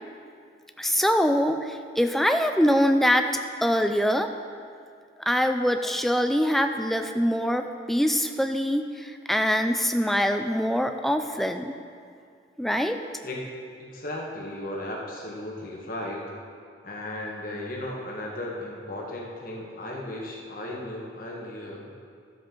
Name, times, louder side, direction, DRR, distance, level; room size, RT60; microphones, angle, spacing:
voice 1, 0.8-3.3 3.6-4.3 5.2-11.7 12.6-13.0, equal, ahead, 6 dB, 0.4 m, -24 dB
voice 2, 13.8-16.3 16.8-21.9, left 1 dB, 50° left, -2 dB, 1.4 m, -35 dB
13.0 x 7.5 x 3.8 m, 2.3 s
head